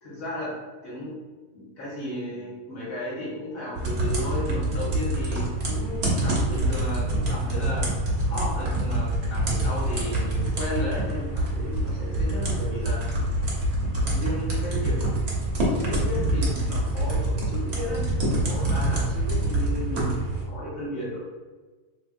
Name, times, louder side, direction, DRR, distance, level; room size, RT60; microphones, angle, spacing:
voice 1, 0.0-1.1 1.5-7.9 8.2-13.1 14.0-15.1 15.7-21.2, left 1 dB, 60° left, -7 dB, 1.4 m, -34 dB
sound 1, 3.8-20.4, right 1 dB, 50° right, 0.9 m, -26 dB
3.3 x 2.8 x 2.4 m, 1.3 s
omnidirectional pair, 1.7 m